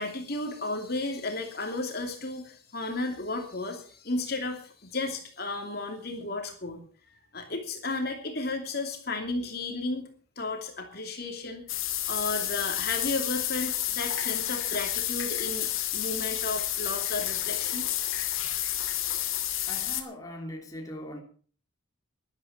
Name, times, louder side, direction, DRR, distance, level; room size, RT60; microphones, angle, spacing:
voice 1, 0.0-6.8 7.3-10.1 10.4-17.9, left 2 dB, 50° left, 3 dB, 2.9 m, -33 dB
sound 1, 11.7-20.0, left 12 dB, 80° left, 2.4 m, -30 dB
voice 2, 19.7-21.2, equal, 15° left, 0 dB, 3.2 m, -40 dB
13.0 x 11.5 x 7.2 m, 0.43 s
head